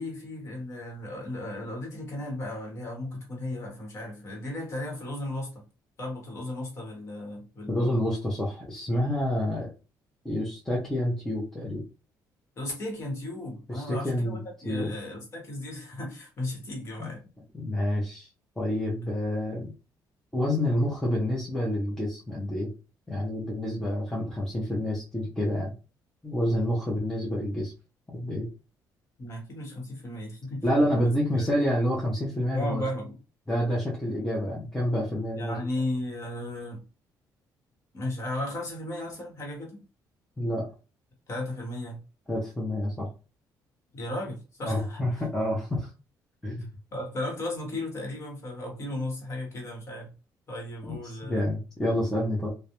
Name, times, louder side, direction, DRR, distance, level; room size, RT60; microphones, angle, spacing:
voice 1, 0.0-5.5 6.0-8.1 12.6-17.2 20.7-20.9 29.2-31.5 32.5-33.2 35.3-36.8 37.9-39.8 41.3-42.0 43.9-45.2 46.9-50.1 50.5-51.5, left 1 dB, 40° left, 1.1 m, -35 dB
voice 2, 7.7-9.7 10.2-11.8 13.7-14.4 14.6-14.9 17.0-17.1 17.5-18.3 18.6-19.7 20.3-22.7 23.1-25.7 26.2-27.7 28.1-28.5 30.6-32.8 33.5-35.6 40.4-40.7 42.3-43.1 44.6-45.9 46.4-46.7 50.9-52.5, left 1 dB, 5° left, 0.6 m, -28 dB
2.3 x 2.0 x 2.9 m
cardioid pair, 160°, 7 cm